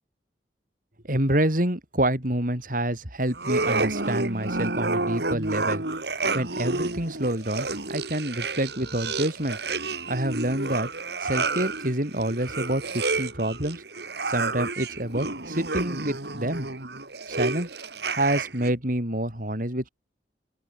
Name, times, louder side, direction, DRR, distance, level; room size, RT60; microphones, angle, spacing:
voice 1, 1.0-5.8 6.3-9.6 10.1-10.9 11.2-13.8 14.3-16.7 17.3-17.7 18.1-19.9, right 1 dB, 50° right, 5.4 m, -27 dB
sound 1, 3.3-18.7, right 3 dB, 65° right, 3.4 m, -30 dB
open air
head